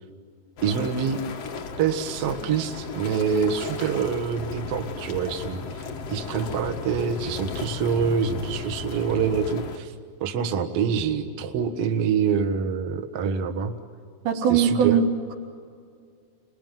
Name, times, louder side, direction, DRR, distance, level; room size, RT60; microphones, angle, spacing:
sound 1, 0.6-9.8, left 4 dB, 80° left, 1.4 m, -35 dB
voice 1, 0.6-1.2 1.8-9.9 10.2-13.8 14.5-15.0, right 6 dB, 55° right, 5 dB, 1.7 m, -26 dB
voice 2, 14.3-15.3, right 7 dB, 90° right, 0 dB, 5.2 m, -21 dB
29.0 x 21.5 x 9.3 m, 2.2 s
omnidirectional pair, 5.0 m